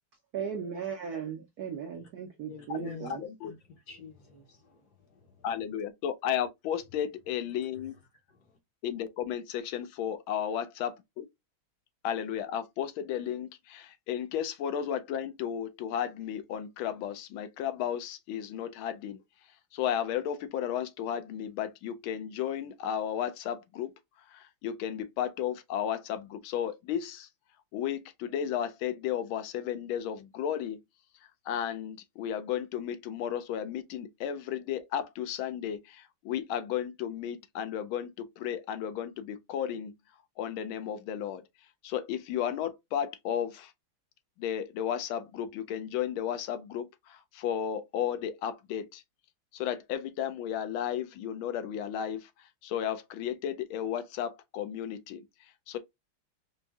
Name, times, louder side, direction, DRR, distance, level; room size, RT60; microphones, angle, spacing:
voice 1, 0.3-3.2, right 7 dB, 65° right, 1.0 m, -37 dB
voice 2, 2.5-3.1 3.4-3.6 3.9-5.4 8.3-8.6, left 4 dB, 60° left, 1.2 m, -47 dB
voice 3, 3.2-3.5 5.4-8.0 8.8-11.3 12.0-19.2 19.7-27.3 27.7-30.8 31.2-39.9 40.4-41.4 41.8-43.7 44.4-49.0 49.5-55.8, left 9 dB, 80° left, 1.4 m, -34 dB
4.7 x 2.6 x 2.3 m
omnidirectional pair, 2.3 m